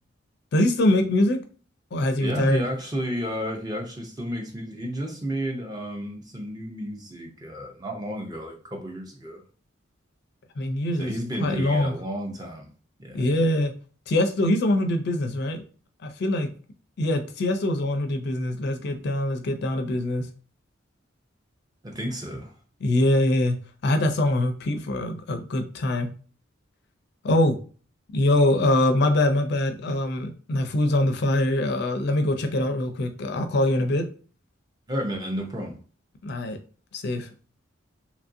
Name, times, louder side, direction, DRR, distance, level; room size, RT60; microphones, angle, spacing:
voice 1, 0.5-1.4 1.9-2.6 10.6-11.1 11.4-11.9 13.1-13.7 14.1-15.6 16.0-16.5 17.0-20.3 22.8-26.1 27.2-27.6 28.1-34.0 36.2-36.6 36.9-37.3, left 1 dB, 55° left, 0.4 m, -23 dB
voice 2, 2.2-9.4 11.0-12.7 13.0-13.4 21.8-22.5 34.9-35.8, equal, 20° right, 0.5 m, -32 dB
3.0 x 2.5 x 2.5 m
head